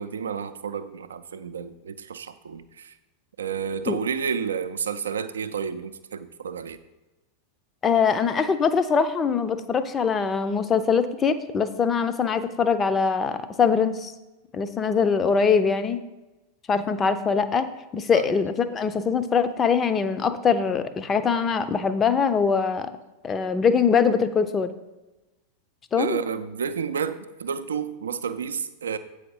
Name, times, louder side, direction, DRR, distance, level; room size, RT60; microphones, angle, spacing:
voice 1, 0.0-2.9 3.4-6.8 18.1-18.3 26.0-29.0, right 6 dB, 70° right, 0.5 m, -30 dB
voice 2, 7.8-14.1 14.5-16.0 16.7-17.7 17.9-22.9 23.2-24.7 25.9-26.2, left 6 dB, 20° left, 0.6 m, -22 dB
8.4 x 4.9 x 5.4 m
figure-of-eight pair, 90°, 0 cm